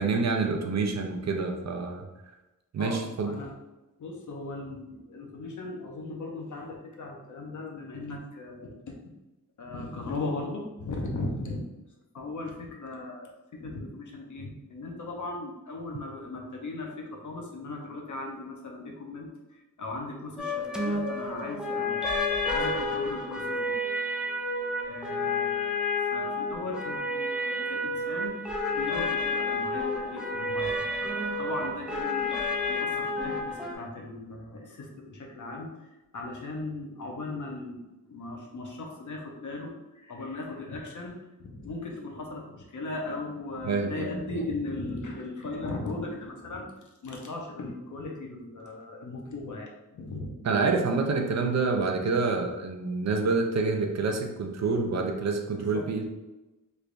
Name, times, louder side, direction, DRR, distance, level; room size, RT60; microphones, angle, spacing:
voice 1, 0.0-2.1 2.7-3.3 43.6-44.4 50.4-56.0, right 4 dB, 55° right, 3 dB, 0.5 m, -27 dB
voice 2, 2.8-3.5 4.0-9.0 9.6-11.6 12.1-22.1 22.5-23.8 24.8-25.7 26.0-28.4 28.7-30.9 31.4-50.4 55.7-55.9, left 2 dB, 60° left, 1 dB, 0.7 m, -38 dB
sound 1, 20.4-33.7, left 2 dB, ahead, 0.4 m, -30 dB
3.4 x 3.3 x 2.5 m, 1.0 s
wide cardioid pair, 120°, 33 cm